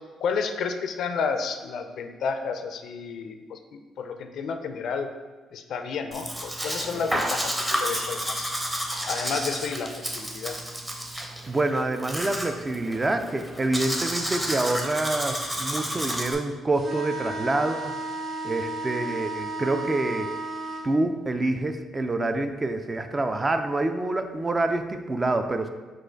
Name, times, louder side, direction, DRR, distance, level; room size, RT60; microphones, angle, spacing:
voice 1, 0.2-5.1 5.5-8.5 9.1-10.6, left 5 dB, 70° left, 7 dB, 0.4 m, -31 dB
Domestic sounds home sounds, 6.1-16.3, equal, 10° right, 0.7 m, -31 dB
voice 2, 11.5-18.0 18.4-20.3 20.8-25.7, right 2 dB, 25° right, 7 dB, 0.3 m, -27 dB
sound 1, 16.7-20.9, right 2 dB, 40° right, 1.4 m, -33 dB
4.5 x 2.4 x 4.5 m, 1.3 s
cardioid pair, 90°, 0 cm